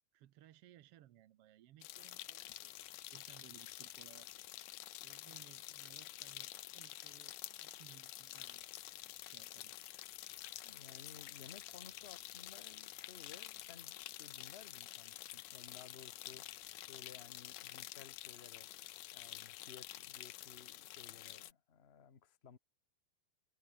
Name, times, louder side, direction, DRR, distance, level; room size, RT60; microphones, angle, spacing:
voice 1, 0.1-4.3 4.7-8.7 9.2-9.8, right 13 dB, 65° right, 1.6 m, -62 dB
sound 1, 1.8-21.5, left 16 dB, 90° left, 2.4 m, -49 dB
sound 2, 8.7-9.2 11.1-11.8 12.5-12.7 13.0-14.0 15.2-15.3, left 17 dB, 75° left, 1.6 m, -62 dB
voice 2, 10.6-16.5 16.9-18.7 19.1-22.6, left 6 dB, 50° left, 0.7 m, -58 dB
omnidirectional pair, 3.5 m